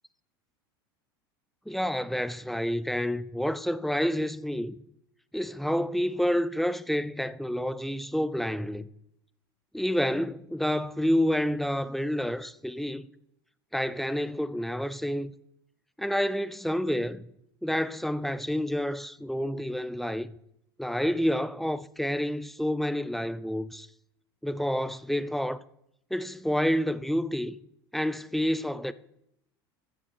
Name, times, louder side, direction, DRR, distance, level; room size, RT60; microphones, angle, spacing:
voice 1, 1.7-4.7 5.3-8.9 9.7-13.1 13.7-15.3 16.0-17.3 17.6-20.3 20.8-23.9 24.4-25.6 26.1-27.6 27.9-28.9, equal, ahead, 0.5 m, -29 dB
12.5 x 7.3 x 4.4 m
hypercardioid pair, 90°, 13 cm